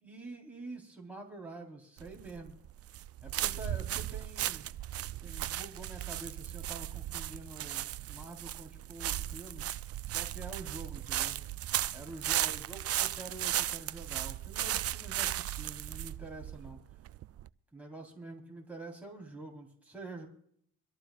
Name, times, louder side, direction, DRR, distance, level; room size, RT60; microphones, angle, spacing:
voice 1, 0.0-2.6 3.2-4.7 5.2-9.7 10.1-11.4 11.9-16.8 17.7-20.3, right 2 dB, 5° right, -1 dB, 3.7 m, -47 dB
sound 1, 2.0-17.5, right 13 dB, 50° right, 0.4 m, -36 dB
25.0 x 13.5 x 2.4 m, 0.65 s
cardioid pair, 90°, 30 cm